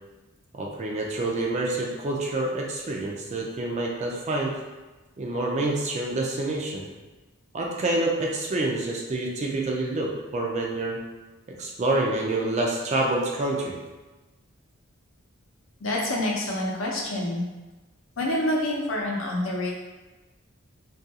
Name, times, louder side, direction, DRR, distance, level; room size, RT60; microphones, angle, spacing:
voice 1, 0.5-4.5 5.2-6.9 7.5-11.0 11.6-13.7, right 2 dB, 35° right, -1 dB, 0.4 m, -27 dB
voice 2, 15.8-17.4 18.2-19.8, left 1 dB, 65° left, -2 dB, 0.6 m, -27 dB
2.3 x 2.3 x 2.7 m, 1.2 s
head